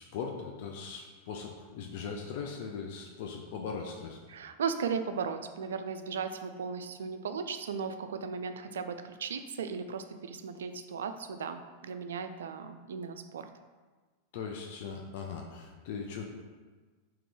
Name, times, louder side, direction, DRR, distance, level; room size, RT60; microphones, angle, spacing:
voice 1, 0.0-4.2 14.3-16.2, left 5 dB, 50° left, 1 dB, 0.4 m, -39 dB
voice 2, 4.3-13.5, right 6 dB, 65° right, 8 dB, 0.3 m, -36 dB
3.7 x 3.0 x 4.7 m, 1.4 s
figure-of-eight pair, 90°, 0 cm